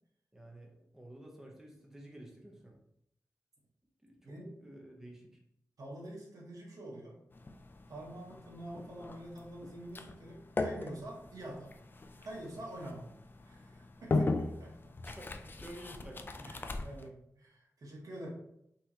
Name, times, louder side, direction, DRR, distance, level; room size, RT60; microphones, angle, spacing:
voice 1, 0.3-2.8 4.0-5.4 15.0-16.6, right 1 dB, 5° right, 0 dB, 0.9 m, -51 dB
voice 2, 4.2-4.6 5.8-7.2 7.9-11.8 12.2-13.1 13.4-15.0 16.4-18.3, right 1 dB, 75° right, -3 dB, 1.3 m, -46 dB
sound 1, 7.3-17.1, left 2 dB, 35° left, 0.4 m, -39 dB
5.5 x 3.0 x 2.9 m, 0.77 s
wide cardioid pair, 110°, 6 cm